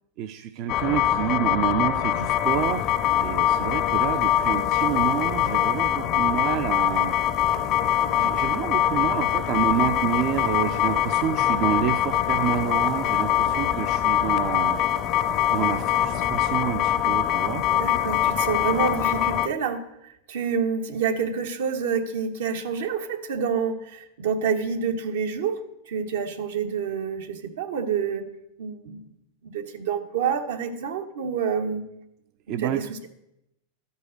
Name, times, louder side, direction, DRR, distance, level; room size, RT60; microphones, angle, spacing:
voice 1, 0.2-2.9 3.2-7.1 8.2-14.8 15.5-17.7 32.5-32.8, right 10 dB, 50° right, 8 dB, 0.5 m, -28 dB
sound 1, 0.7-19.5, left 10 dB, 45° left, 0.6 m, -23 dB
voice 2, 17.7-19.8 20.3-25.6 25.9-28.3 28.6-29.1 29.4-31.8 32.5-33.1, right 6 dB, 80° right, 6 dB, 1.3 m, -28 dB
12.5 x 5.4 x 6.5 m, 0.83 s
hypercardioid pair, 115°, 0 cm